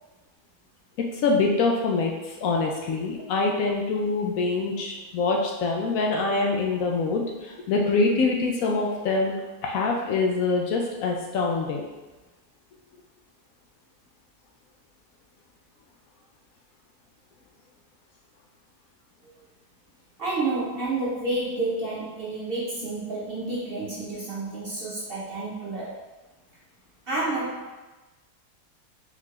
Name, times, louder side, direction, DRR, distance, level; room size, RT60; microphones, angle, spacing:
voice 1, 1.0-9.3 9.6-11.9, left 3 dB, 70° left, 0 dB, 0.9 m, -25 dB
voice 2, 20.2-26.0 27.1-27.7, right 2 dB, 45° right, -6 dB, 0.8 m, -30 dB
3.7 x 3.6 x 3.2 m, 1.2 s
omnidirectional pair, 1.7 m